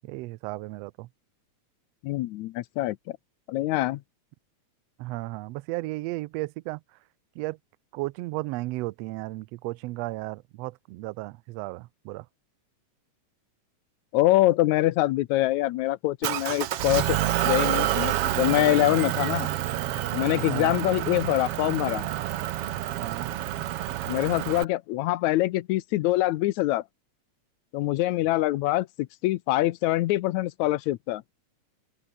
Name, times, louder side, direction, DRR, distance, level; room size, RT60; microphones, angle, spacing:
voice 1, 0.1-1.1 5.0-6.8 7.4-7.6 7.9-12.2 20.4-20.8 23.0-23.3, right 20 dB, 80° right, 1.5 m, -34 dB
voice 2, 2.0-3.2 3.5-4.0 14.1-17.2 17.4-19.5 20.1-22.1 24.0-26.8 27.7-31.2, left 16 dB, 80° left, 2.0 m, -24 dB
Motor vehicle (road) / Engine, 16.2-24.6, right 13 dB, 65° right, 1.6 m, -28 dB
open air
omnidirectional pair, 3.4 m